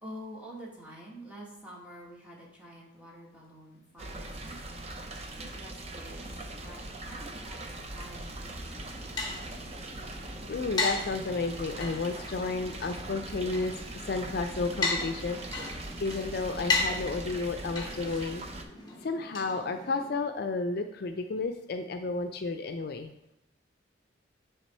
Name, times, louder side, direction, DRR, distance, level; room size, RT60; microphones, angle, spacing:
voice 1, 0.0-4.8 5.4-9.0, equal, 5° right, -4 dB, 1.6 m, -48 dB
sound 1, 4.0-18.6, right 2 dB, 35° right, 0.6 m, -41 dB
sound 2, 8.6-20.2, left 3 dB, 20° left, 1.1 m, -36 dB
voice 2, 10.5-15.6 16.0-18.4 19.0-23.1, left 3 dB, 55° left, 7 dB, 0.4 m, -32 dB
9.2 x 3.4 x 4.3 m, 0.84 s
head